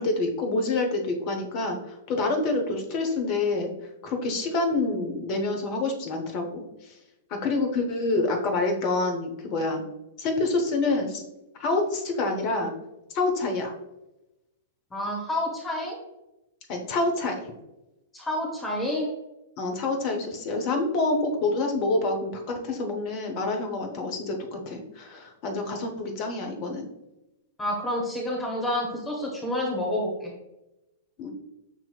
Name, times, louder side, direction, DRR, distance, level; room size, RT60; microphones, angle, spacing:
voice 1, 0.0-3.7 4.0-6.6 7.3-9.8 10.2-11.2 11.6-12.7 13.1-13.7 16.7-17.4 19.6-26.9 31.2-31.3, left 2 dB, 35° left, 3 dB, 0.8 m, -27 dB
voice 2, 14.9-16.0 18.1-19.1 27.6-30.3, left 1 dB, 10° left, -2 dB, 1.0 m, -29 dB
6.9 x 2.9 x 2.3 m, 0.93 s
figure-of-eight pair, 100°, 0 cm